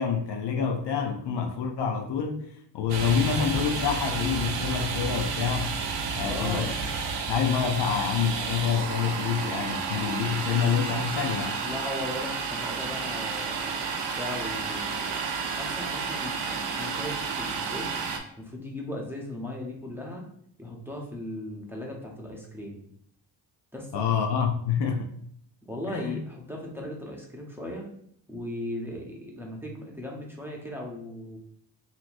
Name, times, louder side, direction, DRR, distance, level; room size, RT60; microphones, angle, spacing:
voice 1, 0.0-2.5 2.7-5.8 6.1-6.7 7.3-11.6 23.9-25.1 25.9-26.2, left 7 dB, 60° left, 0.5 m, -27 dB
Domestic sounds home sounds, 2.9-18.2, right 5 dB, 65° right, 0.6 m, -31 dB
voice 2, 6.2-6.7 11.6-15.2 15.6-17.9 18.4-20.2 20.6-22.8 23.7-24.1 25.6-27.9 28.3-31.4, left 1 dB, 5° right, 0.8 m, -37 dB
2.9 x 2.7 x 2.5 m
supercardioid pair, 55°, 46 cm